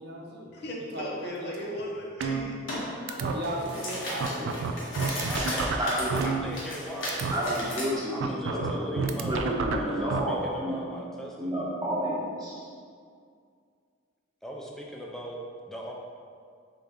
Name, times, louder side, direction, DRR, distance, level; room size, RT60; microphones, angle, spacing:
voice 1, 0.0-0.6 0.9-1.9 3.1-4.7, right 1 dB, 55° right, -1 dB, 0.6 m, -36 dB
voice 2, 0.5-3.2, equal, 55° left, -2 dB, 0.7 m, -38 dB
sound 1, 2.2-2.8 3.1-3.3 3.8-3.9 4.2-6.8 7.1-7.3 8.2-10.2, right 5 dB, 85° right, 0.3 m, -29 dB
sound 2, 2.7-2.8 3.3-7.9, left 1 dB, 85° left, 1.1 m, -35 dB
voice 3, 5.3-5.7 6.2-7.5 8.1-11.7 14.4-15.4 15.6-15.9, equal, ahead, -2 dB, 0.4 m, -40 dB
voice 4, 5.8-6.2 7.3-10.8 11.4-12.6, equal, 20° right, -7 dB, 0.9 m, -30 dB
3.9 x 3.3 x 3.5 m, 2.2 s
head